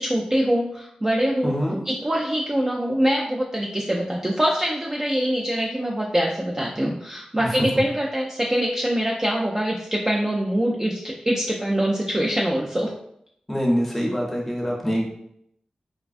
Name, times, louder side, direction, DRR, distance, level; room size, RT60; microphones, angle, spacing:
voice 1, 0.0-1.5 1.9-12.9, equal, 20° right, -3 dB, 0.4 m, -24 dB
voice 2, 1.4-1.8 7.4-7.7 13.5-15.0, equal, 5° left, -2 dB, 0.7 m, -24 dB
3.3 x 2.1 x 2.4 m, 0.73 s
wide cardioid pair, 85°, 2 cm